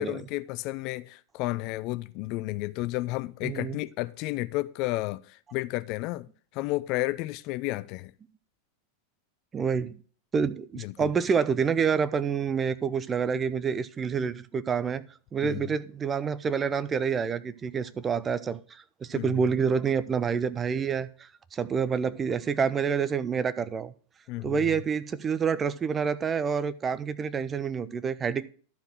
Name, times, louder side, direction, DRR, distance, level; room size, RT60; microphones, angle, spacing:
voice 1, 0.0-6.3 6.5-8.1 10.8-11.1 15.4-15.6 19.1-19.3 24.3-24.6, left 19 dB, 40° left, 0.3 m, -32 dB
voice 2, 3.4-3.8 9.5-10.0 10.3-15.0 15.3-23.9 24.4-28.5, right 6 dB, 20° right, 0.6 m, -28 dB
11.5 x 4.9 x 6.3 m
figure-of-eight pair, 90°, 0 cm